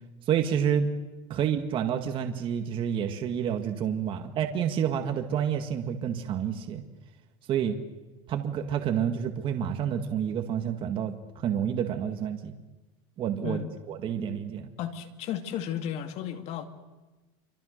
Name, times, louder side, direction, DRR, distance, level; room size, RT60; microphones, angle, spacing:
voice 1, 0.3-0.9 1.3-6.8 7.5-7.8 8.3-12.5 13.2-13.6 13.9-14.7, right 8 dB, 40° right, 5 dB, 1.8 m, -29 dB
voice 2, 13.4-13.7 14.8-16.6, left 9 dB, 50° left, 7 dB, 2.5 m, -34 dB
27.0 x 25.0 x 6.6 m, 1.2 s
supercardioid pair, 135°, 14 cm